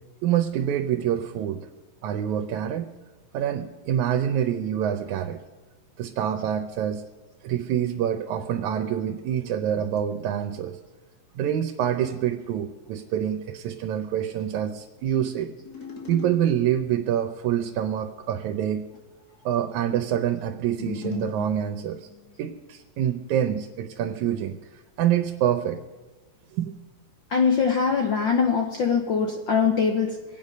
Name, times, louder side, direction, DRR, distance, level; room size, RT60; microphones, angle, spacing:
voice 1, 0.2-1.6 2.0-2.9 3.3-5.4 6.0-7.0 7.4-10.8 11.4-15.5 16.1-18.8 19.5-22.1 22.4-24.6 25.0-25.8 26.5-26.7, right 10 dB, 80° right, 6 dB, 2.2 m, -26 dB
sound 1, 15.5-17.0 20.5-22.3, left 8 dB, 35° left, 2.3 m, -38 dB
voice 2, 27.3-30.2, left 6 dB, 70° left, 3 dB, 1.1 m, -22 dB
24.5 x 9.1 x 5.3 m, 1.3 s
omnidirectional pair, 3.4 m